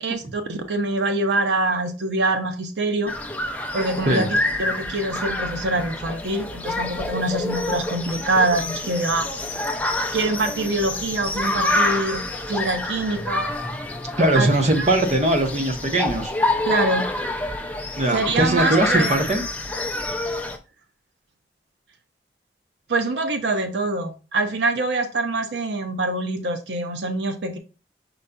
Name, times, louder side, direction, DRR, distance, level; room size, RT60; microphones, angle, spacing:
voice 1, 0.0-3.1 3.7-9.3 9.6-9.7 10.1-12.2 12.5-13.5 14.3-14.5 14.8-14.9 16.6-17.0 18.1-19.2 22.9-27.6, right 2 dB, 85° right, 0.6 m, -24 dB
sound 1, 3.1-20.6, left 2 dB, 10° left, 0.4 m, -27 dB
voice 2, 14.2-16.3 18.0-19.4, right 1 dB, 40° right, 0.7 m, -20 dB
5.4 x 3.9 x 2.2 m
head